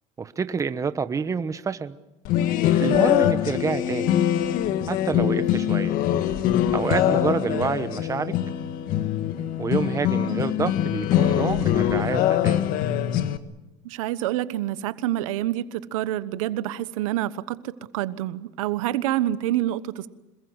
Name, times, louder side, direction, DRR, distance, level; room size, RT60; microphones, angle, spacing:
voice 1, 0.2-2.0 2.8-4.2 4.9-6.0 6.7-8.4 9.6-12.6, right 5 dB, 20° right, 12 dB, 1.1 m, -28 dB
sound 1, 2.3-13.4, left 11 dB, 60° left, 1.7 m, -23 dB
voice 2, 2.7-3.0 13.8-20.1, right 13 dB, 90° right, 14 dB, 1.2 m, -27 dB
26.5 x 21.5 x 8.1 m, 0.96 s
supercardioid pair, 120°, 16 cm